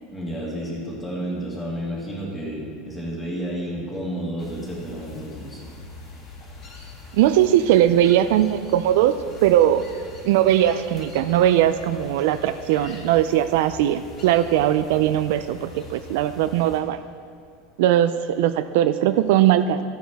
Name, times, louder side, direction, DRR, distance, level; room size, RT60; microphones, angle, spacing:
voice 1, 0.1-5.6, right 1 dB, 10° left, -4 dB, 1.9 m, -31 dB
sound 1, 4.4-16.8, left 2 dB, 30° left, 1.9 m, -43 dB
voice 2, 7.2-9.1 9.4-9.8 10.2-17.0 17.8-19.8, right 12 dB, 65° right, 11 dB, 0.3 m, -19 dB
13.5 x 8.7 x 3.5 m, 2.3 s
supercardioid pair, 165°, 0 cm